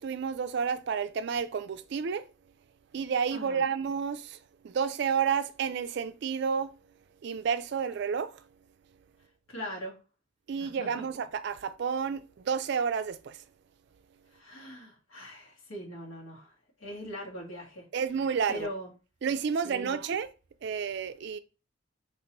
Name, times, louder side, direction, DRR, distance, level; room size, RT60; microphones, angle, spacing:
voice 1, 0.0-2.3 2.9-4.4 4.6-6.8 7.2-8.4 10.5-13.4 17.9-18.7 19.2-20.3 20.6-21.4, right 6 dB, 55° right, 0.3 m, -30 dB
voice 2, 3.3-3.6 9.5-9.9 10.6-11.0 14.3-16.5 16.8-17.8 18.5-18.9 19.6-19.9, equal, 85° left, 1.6 m, -41 dB
2.9 x 2.9 x 4.4 m
head